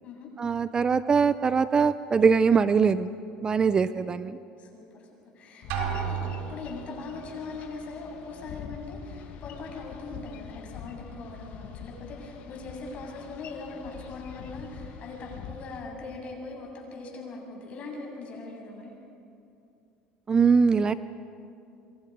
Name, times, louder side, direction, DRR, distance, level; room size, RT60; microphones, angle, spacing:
voice 1, 0.4-3.1 3.4-4.4 20.3-20.9, right 5 dB, 30° right, 14 dB, 0.6 m, -22 dB
voice 2, 3.6-4.1 4.6-4.9 5.3-18.9, left 3 dB, 50° left, 0 dB, 7.5 m, -40 dB
Boat Water vehicle, 5.6-15.8, left 7 dB, 65° left, 1.9 m, -45 dB
Drum, 5.7-6.9, right 7 dB, 80° right, 3.7 m, -31 dB
28.0 x 24.0 x 5.4 m, 2.6 s
supercardioid pair, 105°, 3 cm